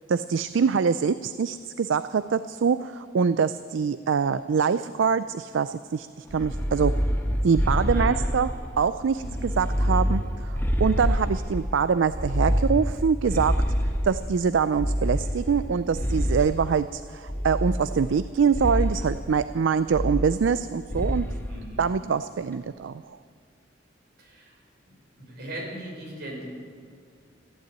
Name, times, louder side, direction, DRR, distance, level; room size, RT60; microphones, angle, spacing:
voice 1, 0.1-6.9 7.4-8.5 8.8-13.6 14.0-21.3 21.8-22.9, right 6 dB, 75° right, 13 dB, 0.4 m, -24 dB
sound 1, 6.3-8.7 9.2-11.7 12.1-14.3 14.8-16.6 17.3-18.2 18.5-19.0 19.9-20.6 20.9-21.4, equal, 10° left, 1.2 m, -26 dB
voice 2, 7.9-8.5 9.2-9.5 21.5-21.8 24.2-24.6 24.9-26.4, right 1 dB, 60° right, -2 dB, 5.2 m, -39 dB
15.0 x 11.0 x 8.9 m, 2.2 s
head